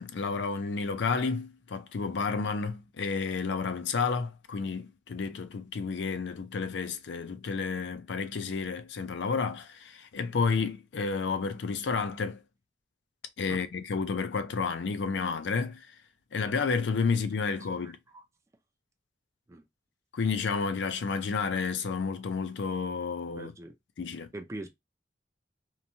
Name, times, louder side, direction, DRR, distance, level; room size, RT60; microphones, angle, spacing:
voice 1, 0.0-12.4 13.4-15.9 16.3-18.0 20.1-23.5 24.0-24.3, left 5 dB, 75° left, 0.4 m, -31 dB
voice 2, 17.8-18.2 19.5-19.6 23.3-23.7 24.3-24.7, right 2 dB, 15° right, 0.4 m, -42 dB
2.9 x 2.2 x 2.6 m
head